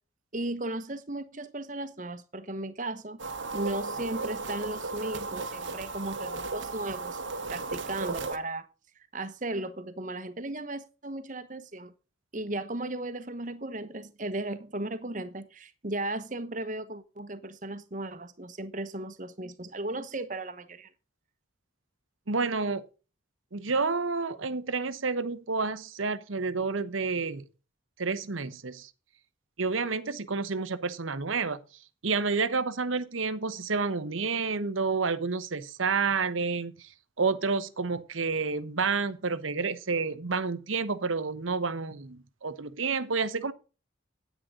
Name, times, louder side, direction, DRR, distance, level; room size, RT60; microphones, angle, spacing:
voice 1, 0.3-3.2 3.5-7.2 7.5-8.7 9.1-11.9 12.3-20.9, right 2 dB, 40° right, 1.1 m, -36 dB
sound 1, 3.2-8.4, right 3 dB, 75° right, 1.2 m, -35 dB
voice 2, 22.3-22.8 23.5-27.4 28.0-28.9 29.6-31.6 32.0-36.9 37.2-43.5, right 4 dB, 90° right, 1.0 m, -29 dB
10.0 x 9.5 x 3.8 m
head